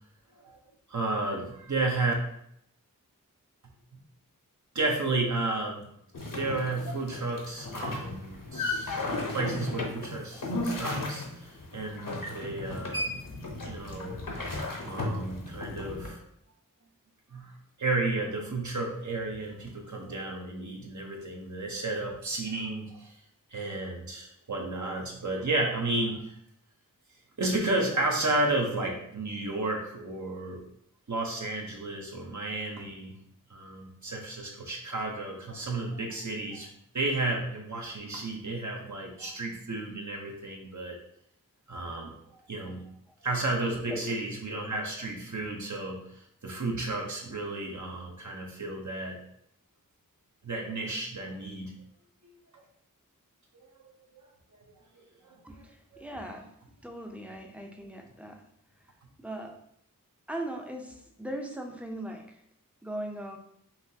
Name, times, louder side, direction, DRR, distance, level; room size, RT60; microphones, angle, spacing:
voice 1, 0.9-2.1 4.7-5.8 6.3-13.2 13.6-14.2 14.8-16.2 17.3-17.5 17.8-23.1 23.5-26.3 27.4-30.6 31.1-33.2 33.5-36.7 36.9-41.0 41.7-42.1 42.5-42.8 43.2-46.0 46.4-49.2 50.4-51.8 52.5-52.6 53.5-53.7 54.9-55.3 55.9-56.0, right 2 dB, 55° right, 0 dB, 1.0 m, -32 dB
sound 1, 6.1-16.1, left 2 dB, 65° left, 1.1 m, -35 dB
voice 2, 43.7-44.1 44.5-44.7 55.4-56.5 56.8-58.4 58.8-59.5 60.3-62.4 62.8-63.4, right 1 dB, 5° right, 3 dB, 0.7 m, -39 dB
5.7 x 2.7 x 2.8 m, 0.71 s
wide cardioid pair, 65°, 34 cm